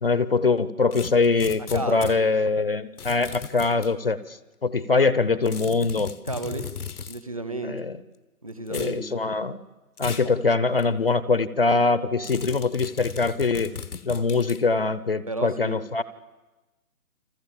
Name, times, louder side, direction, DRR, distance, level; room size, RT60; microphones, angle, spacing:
voice 1, 0.0-6.1 7.6-8.0 8.7-9.6 10.0-13.7 14.0-16.0, left 4 dB, 40° left, 16 dB, 0.8 m, -23 dB
sound 1, 0.9-2.2 3.0-3.9 5.5-7.2 8.7-9.0 10.0-10.3 10.8-10.9 12.2-14.6, left 6 dB, 85° left, 1.5 m, -37 dB
voice 2, 1.7-2.1 6.3-6.7 7.1-7.8 8.4-9.2 10.2-10.4 15.3-15.8, right 2 dB, 25° right, 11 dB, 0.9 m, -32 dB
30.0 x 23.0 x 7.3 m, 1.1 s
hypercardioid pair, 175°, 44 cm